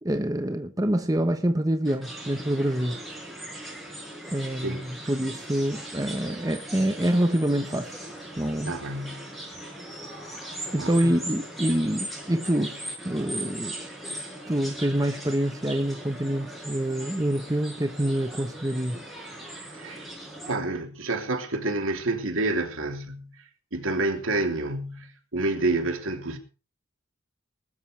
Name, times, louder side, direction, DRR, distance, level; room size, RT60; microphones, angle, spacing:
voice 1, 0.0-3.0 4.3-7.9 8.4-8.8 10.7-12.8 13.0-13.7 14.5-19.0, right 1 dB, 15° right, 1.1 m, -26 dB
sound 1, 1.9-20.5, right 1 dB, ahead, 5.8 m, -39 dB
voice 2, 8.7-9.3 10.8-11.1 19.7-20.1 20.5-23.3 23.7-26.4, right 2 dB, 75° right, 3.2 m, -29 dB
20.0 x 13.5 x 3.4 m
head